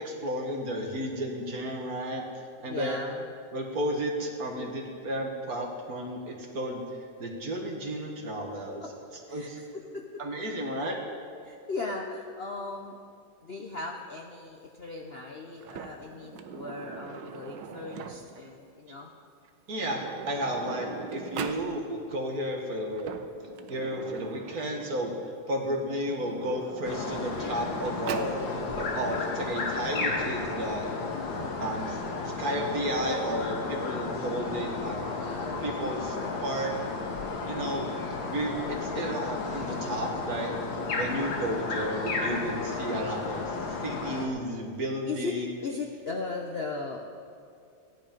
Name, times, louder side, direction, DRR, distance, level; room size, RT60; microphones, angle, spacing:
voice 1, 0.0-3.0 3.5-6.8 7.2-8.8 9.3-9.6 10.2-11.0 18.9-19.0 19.7-23.1 23.7-25.1 25.5-30.9 31.6-32.0 32.4-35.2 35.6-36.2 36.4-36.7 37.5-37.9 38.3-40.5 40.9-43.6 43.8-45.5, equal, 55° right, 1 dB, 1.9 m, -32 dB
voice 2, 2.6-3.2 8.8-8.9 9.3-10.0 11.4-13.0 13.4-19.1 38.5-39.0 45.1-47.0, left 3 dB, 50° left, 1 dB, 0.7 m, -37 dB
Sliding door, 15.6-18.5 19.4-19.5 19.8-21.7 22.8-25.3 26.1-28.4, right 7 dB, 80° right, 1.4 m, -41 dB
sound 1, 26.8-44.3, left 3 dB, 90° left, 2.0 m, -33 dB
15.5 x 10.5 x 5.2 m, 2.4 s
omnidirectional pair, 2.0 m